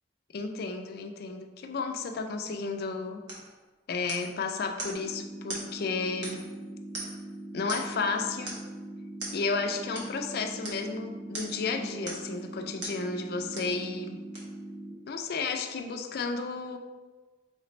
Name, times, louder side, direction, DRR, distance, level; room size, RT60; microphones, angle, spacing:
voice 1, 0.3-3.2 3.9-6.5 7.5-8.6 9.3-14.2 15.1-16.8, left 4 dB, 60° left, 6 dB, 0.4 m, -32 dB
sound 1, 3.3-3.5 4.1-4.4 4.8-5.0 5.5-5.7 6.2-6.6 6.9-7.3 7.7-8.0 8.5-8.7 9.2-9.4 9.9-10.1 10.6-10.8 11.3-11.6 12.0-12.3 12.8-13.0 13.5-13.8 14.3-14.4, right 2 dB, 90° right, 1.1 m, -39 dB
sound 2, 4.9-14.9, right 1 dB, 20° right, 1.4 m, -42 dB
3.9 x 3.2 x 3.2 m, 1.3 s
head